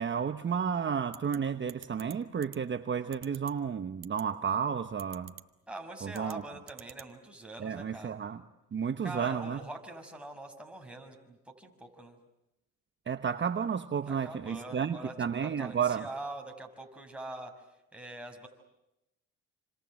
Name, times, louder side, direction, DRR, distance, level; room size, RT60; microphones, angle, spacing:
voice 1, 0.0-5.3 6.0-6.4 7.6-8.4 8.7-9.6 13.1-16.1, right 7 dB, 40° right, 8 dB, 1.2 m, -32 dB
sound 1, 1.1-1.4 1.7-2.1 2.4-2.6 3.1-3.5 4.0-4.2 5.0-5.4 6.1-6.3 6.7-7.1, right 10 dB, 60° right, 1.7 m, -46 dB
voice 2, 5.7-8.2 9.0-12.2 14.1-15.1 15.4-17.5 17.9-18.5, right 1 dB, 5° right, 2 dB, 5.9 m, -43 dB
28.5 x 26.5 x 7.7 m, 0.90 s
cardioid pair, 90°, 30 cm